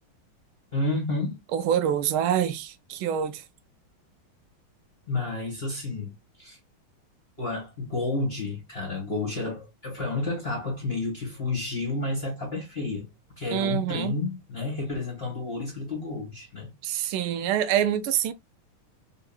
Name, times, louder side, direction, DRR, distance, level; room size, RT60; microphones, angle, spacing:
voice 1, 0.7-1.4 5.1-6.6 7.4-13.1 13.3-16.7, left 2 dB, 35° left, 1.4 m, -31 dB
voice 2, 1.5-3.4 13.5-14.2 16.8-18.3, right 9 dB, 85° right, 1.5 m, -26 dB
3.9 x 3.7 x 2.3 m
omnidirectional pair, 2.3 m